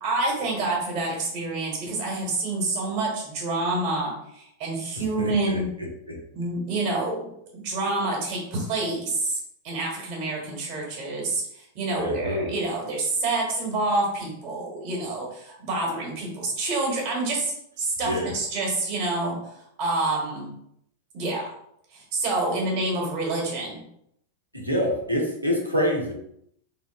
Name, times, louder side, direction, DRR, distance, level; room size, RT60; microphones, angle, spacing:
voice 1, 0.0-5.7 6.3-9.4 9.6-20.5 21.1-21.5 21.9-23.8, right 2 dB, 40° right, -1 dB, 1.0 m, -28 dB
voice 2, 4.9-6.2 12.0-12.5 18.0-18.3 24.5-26.1, equal, 90° right, -1 dB, 0.7 m, -27 dB
3.4 x 2.9 x 2.3 m, 0.73 s
figure-of-eight pair, 90°, 0 cm